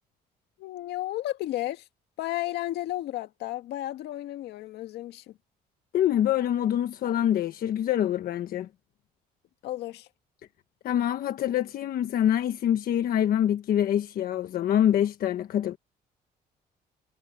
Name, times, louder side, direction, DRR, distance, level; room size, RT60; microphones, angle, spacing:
voice 1, 0.6-1.9 2.2-5.4 9.6-10.1, left 15 dB, 80° left, 1.9 m, -33 dB
voice 2, 5.9-8.7 10.8-15.8, left 10 dB, 60° left, 1.3 m, -25 dB
cardioid pair, 110°, 17 cm